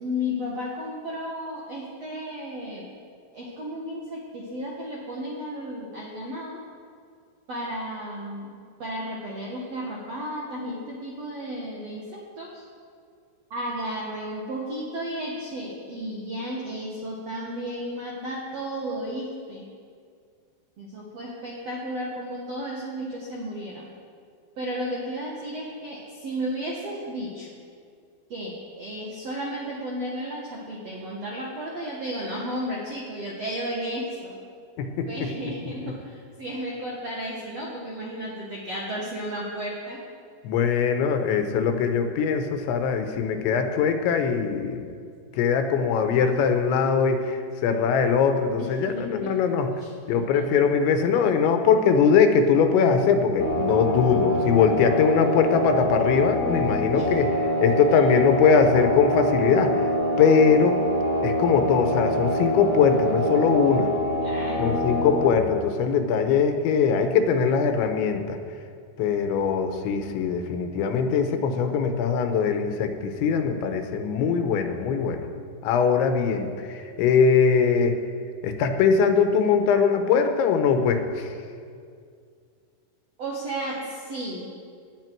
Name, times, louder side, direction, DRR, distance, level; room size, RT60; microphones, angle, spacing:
voice 1, 0.0-2.9 3.3-6.6 7.5-12.6 13.5-19.7 20.8-23.9 24.6-27.5 28.3-34.4 35.1-40.0 48.6-49.3 50.3-50.4 56.9-57.1 64.2-64.7 83.2-84.5, equal, 70° right, -4 dB, 1.5 m, -33 dB
voice 2, 34.8-35.9 40.4-44.9 45.3-49.7 50.1-57.3 57.6-59.9 60.2-60.8 61.2-63.9 64.6-68.4 69.0-75.3 75.6-78.0 78.4-81.4, left 6 dB, 85° left, 6 dB, 3.3 m, -21 dB
sound 1, 53.4-65.3, equal, 30° left, 2.0 m, -25 dB
18.0 x 9.9 x 4.6 m, 2.2 s
omnidirectional pair, 5.1 m